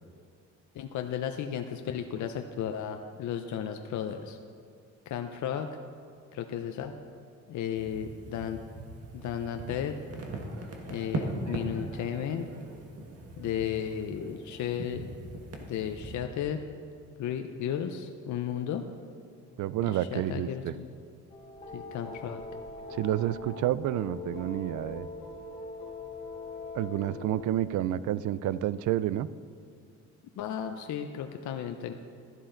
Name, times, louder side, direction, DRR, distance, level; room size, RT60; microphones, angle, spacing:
voice 1, 0.7-4.4 5.1-5.7 6.3-6.9 7.5-8.6 9.1-10.0 10.9-12.5 13.4-15.0 15.6-16.6 17.2-18.8 19.8-20.9 21.7-22.4 30.4-31.9, left 9 dB, 70° left, 5 dB, 0.7 m, -34 dB
sound 1, 7.8-16.2, right 2 dB, 50° right, 1.7 m, -40 dB
voice 2, 19.6-20.7 22.9-25.1 26.7-29.3, right 12 dB, 75° right, 17 dB, 0.5 m, -29 dB
sound 2, 21.3-27.5, left 3 dB, 25° left, 3.4 m, -42 dB
13.5 x 11.0 x 3.9 m, 2.1 s
cardioid pair, 90°, 30 cm